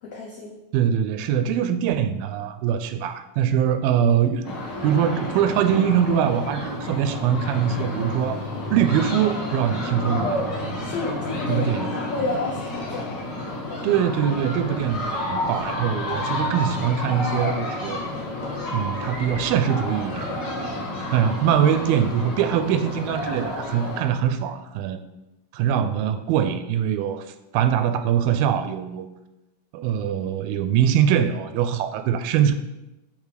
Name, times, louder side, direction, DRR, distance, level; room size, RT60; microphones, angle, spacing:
voice 1, 0.0-0.6 10.8-11.7 11.9-13.1, left 3 dB, 80° left, -2 dB, 1.3 m, -30 dB
voice 2, 0.7-4.5 4.8-10.4 11.5-11.9 13.8-18.0 18.7-20.4 21.1-25.0 25.5-27.3 27.5-29.1 29.7-32.5, right 9 dB, 85° right, 10 dB, 2.3 m, -23 dB
sound 1, 4.4-24.0, left 1 dB, 55° left, 1.2 m, -30 dB
10.0 x 3.5 x 5.0 m, 0.97 s
omnidirectional pair, 4.1 m